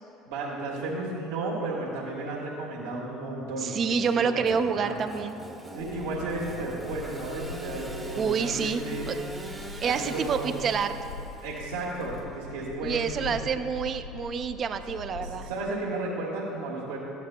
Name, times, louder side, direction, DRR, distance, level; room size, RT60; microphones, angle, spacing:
voice 1, 0.3-5.0 5.7-9.1 9.8-10.6 11.4-13.4 15.2-17.0, right 2 dB, 75° right, -6 dB, 1.3 m, -33 dB
voice 2, 3.6-5.4 8.2-8.8 9.1-9.2 9.8-11.0 12.8-15.5, right 6 dB, 45° right, 9 dB, 0.5 m, -28 dB
Engine / Sawing, 4.4-12.7, right 1 dB, 10° right, 0.7 m, -43 dB
sound 1, 5.8-15.7, left 4 dB, 85° left, 0.3 m, -42 dB
12.5 x 8.3 x 2.2 m, 2.8 s
hypercardioid pair, 75°, 0 cm